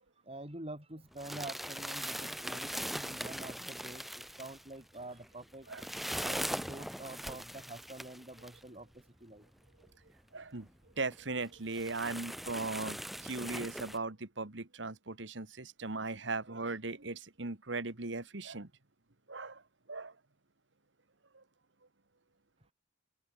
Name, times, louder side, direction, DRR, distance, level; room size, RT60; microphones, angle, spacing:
voice 1, 0.3-5.7 6.2-8.9 9.2-9.4, right 1 dB, 30° right, 5.9 m, -47 dB
sound 1, 1.1-8.6 9.4-9.5 9.8-9.9 10.6-10.7 11.1-11.2 11.7-14.0, equal, ahead, 1.4 m, -40 dB
voice 2, 10.3-10.7 11.0-18.7 19.3-19.6 19.9-20.1 21.3-21.4, right 3 dB, 75° right, 1.9 m, -38 dB
open air
head